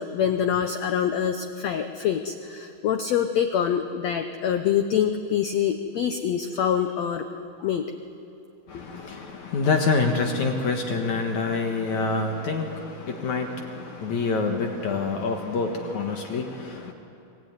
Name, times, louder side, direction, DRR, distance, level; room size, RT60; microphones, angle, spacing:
voice 1, 0.0-7.2 7.6-7.9, left 8 dB, 75° left, 7 dB, 1.5 m, -25 dB
voice 2, 8.7-16.9, left 4 dB, 60° left, 3 dB, 2.7 m, -26 dB
25.5 x 21.0 x 9.7 m, 2.7 s
omnidirectional pair, 4.2 m